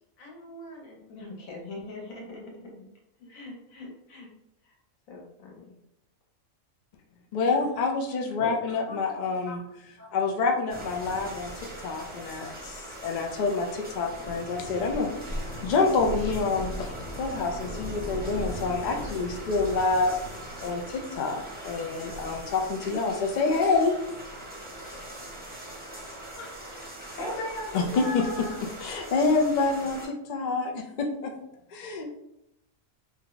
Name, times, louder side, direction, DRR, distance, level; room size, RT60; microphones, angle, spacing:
voice 1, 0.2-2.7 3.2-4.3 4.6-4.7 5.1-5.8, left 2 dB, 90° left, -1 dB, 1.3 m, -43 dB
voice 2, 7.3-9.6 10.1-15.1 15.6-20.2 20.6-24.0 26.4-26.5 27.7-28.3 28.8-31.3 31.7-32.1, left 4 dB, 75° left, 2 dB, 0.4 m, -27 dB
sound 1, 10.7-30.1, equal, 10° right, 0.5 m, -39 dB
voice 3, 27.0-28.5, left 1 dB, 40° left, -4 dB, 1.1 m, -36 dB
2.8 x 2.2 x 3.8 m, 0.84 s
omnidirectional pair, 1.4 m